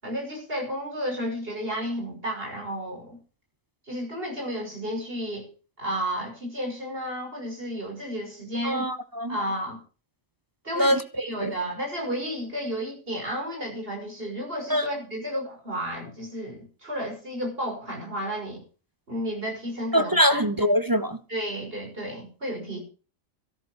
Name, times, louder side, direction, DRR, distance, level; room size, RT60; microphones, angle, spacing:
voice 1, 0.0-3.2 3.9-5.5 5.8-8.9 9.3-9.8 10.6-18.6 19.1-20.5 21.3-22.8, equal, 40° right, 6.4 m, -32 dB
voice 2, 8.6-9.4 10.8-11.0 11.4-11.5 14.7-14.8 19.9-21.2, equal, 20° right, 0.8 m, -23 dB
13.5 x 11.5 x 6.3 m
omnidirectional pair, 1.4 m